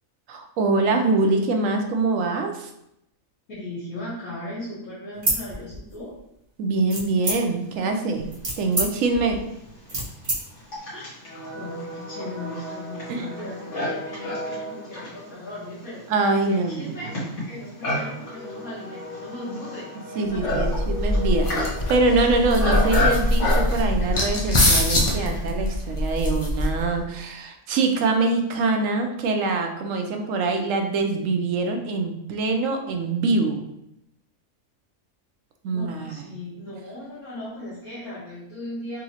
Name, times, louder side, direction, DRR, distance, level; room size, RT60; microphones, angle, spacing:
voice 1, 0.3-2.7 6.6-8.3 8.6-9.5 13.1-13.3 16.1-17.0 20.2-33.6 35.6-36.2, right 3 dB, 70° right, 4 dB, 0.9 m, -24 dB
voice 2, 3.5-6.1 10.9-11.1 11.5-16.0 16.4-17.1 17.4-20.9 35.7-39.0, left 1 dB, 85° left, -10 dB, 1.6 m, -37 dB
sound 1, 5.1-6.2 6.9-7.7 8.2-10.4, right 1 dB, 35° right, 0.9 m, -28 dB
Livestock farm animals working animals, 8.7-8.8 9.6-25.5, left 1 dB, 60° left, 1.5 m, -31 dB
sound 2, 20.3-27.0, left 1 dB, 40° left, 0.4 m, -23 dB
4.0 x 2.7 x 2.8 m, 0.81 s
omnidirectional pair, 1.4 m